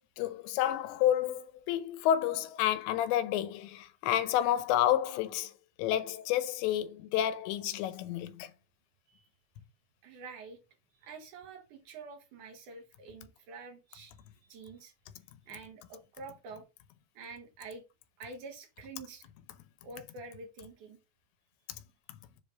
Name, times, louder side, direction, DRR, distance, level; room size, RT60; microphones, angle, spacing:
voice 1, 0.2-5.5 5.8-8.5 22.1-22.2, left 11 dB, 90° left, 3.0 m, -30 dB
voice 2, 10.0-10.6 10.9-14.9 15.5-16.7 17.1-17.8 18.2-19.3 19.8-21.0, right 4 dB, 60° right, 2.3 m, -47 dB
7.6 x 3.3 x 5.5 m
omnidirectional pair, 5.0 m